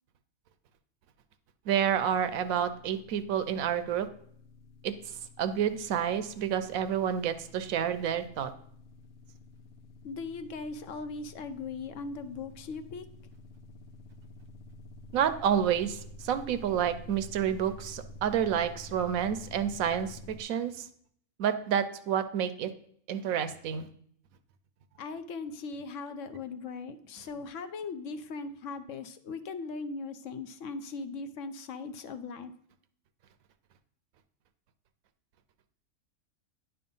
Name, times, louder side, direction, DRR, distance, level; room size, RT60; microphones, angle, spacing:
voice 1, 1.7-4.1 4.8-8.5 15.1-20.9 21.4-22.7 23.1-23.9, right 9 dB, 80° right, 11 dB, 1.0 m, -29 dB
sound 1, 1.8-20.4, left 1 dB, 85° left, 1.2 m, -50 dB
voice 2, 10.0-13.1 25.0-32.5, left 4 dB, 70° left, 10 dB, 0.9 m, -39 dB
9.9 x 3.4 x 5.4 m, 0.67 s
omnidirectional pair, 1.5 m